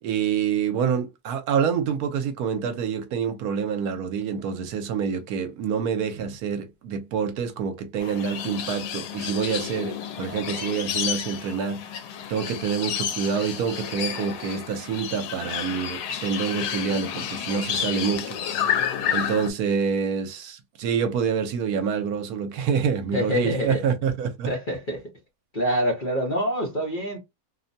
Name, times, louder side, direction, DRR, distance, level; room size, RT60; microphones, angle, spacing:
voice 1, 0.0-11.8 12.3-18.4 19.1-24.5, right 6 dB, 75° right, 1.1 m, -27 dB
sound 1, 8.0-19.5, left 9 dB, 90° left, 1.2 m, -30 dB
voice 2, 17.5-18.1 23.1-23.8 24.5-25.0 25.5-27.2, equal, 40° left, 0.8 m, -27 dB
2.8 x 2.1 x 2.6 m
omnidirectional pair, 1.7 m